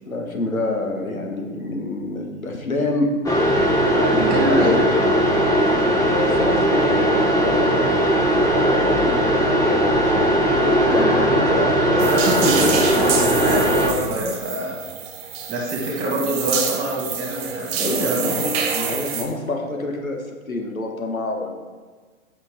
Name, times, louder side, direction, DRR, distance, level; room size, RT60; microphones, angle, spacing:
voice 1, 0.0-3.4 4.1-4.8 5.9-10.2 10.5-12.4 17.8-21.6, left 2 dB, 90° left, 2 dB, 1.4 m, -27 dB
sound 1, 3.2-13.9, equal, 10° left, 0.9 m, -18 dB
voice 2, 4.1-4.8 11.9-14.8 15.5-18.3, right 1 dB, 20° right, -2 dB, 2.1 m, -25 dB
sound 2, 12.0-19.2, right 7 dB, 50° right, 1.4 m, -27 dB
8.3 x 5.8 x 3.7 m, 1.4 s
figure-of-eight pair, 110°, 40 cm